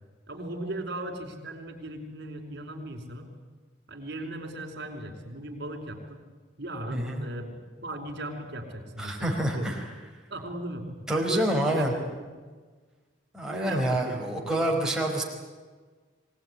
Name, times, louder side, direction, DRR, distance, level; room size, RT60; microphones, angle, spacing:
voice 1, 0.3-3.3 3.9-6.2 6.6-9.7 10.3-12.3 13.5-14.6, right 1 dB, 60° right, 4 dB, 5.1 m, -37 dB
voice 2, 6.9-7.3 9.0-9.9 11.1-11.9 13.3-15.2, right 1 dB, 5° right, -1 dB, 4.6 m, -27 dB
24.5 x 18.5 x 9.9 m, 1.4 s
head